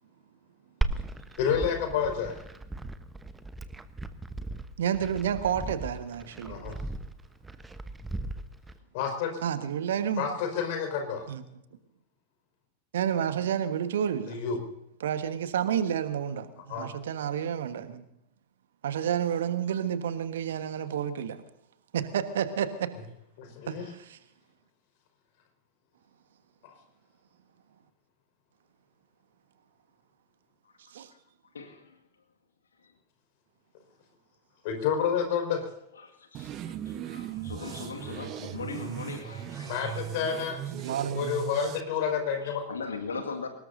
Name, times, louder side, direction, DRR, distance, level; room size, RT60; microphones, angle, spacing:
Glass, 0.8-8.8, right 2 dB, 10° right, 1.0 m, -37 dB
voice 1, 1.4-2.4 6.5-6.8 8.9-9.3 10.2-11.2 14.3-14.6 16.7-16.9 23.4-23.8 26.6-26.7 34.6-35.6 39.7-40.6 41.1-42.6, left 7 dB, 50° left, 4.9 m, -29 dB
voice 2, 4.8-6.7 9.4-10.2 11.3-11.4 12.9-14.4 15.0-18.0 18.8-21.4 21.9-22.9 23.7-24.2 30.9-31.1 40.7-41.3, right 9 dB, 60° right, 1.4 m, -30 dB
voice 3, 31.5-32.0 32.8-32.9 35.9-40.9 42.0-42.1 42.4-43.5, left 5 dB, 70° left, 2.0 m, -40 dB
sound 1, 36.3-41.8, right 11 dB, 35° right, 0.9 m, -38 dB
24.0 x 20.0 x 2.7 m
figure-of-eight pair, 90°, 0 cm